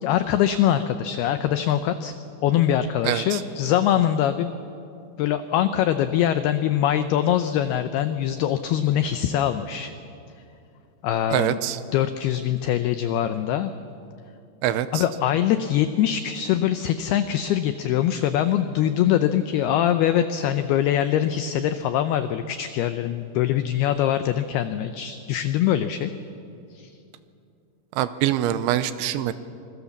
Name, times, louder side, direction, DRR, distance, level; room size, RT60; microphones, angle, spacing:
voice 1, 0.0-2.1 2.4-4.5 5.2-9.9 11.0-11.6 11.9-13.7 14.9-26.1 26.7-26.9, left 11 dB, 85° left, 10 dB, 2.2 m, -23 dB
voice 2, 3.0-3.4 11.3-11.8 14.6-15.0 28.0-29.3, right 12 dB, 80° right, 13 dB, 3.1 m, -24 dB
26.0 x 22.0 x 7.2 m, 2.5 s
omnidirectional pair, 5.5 m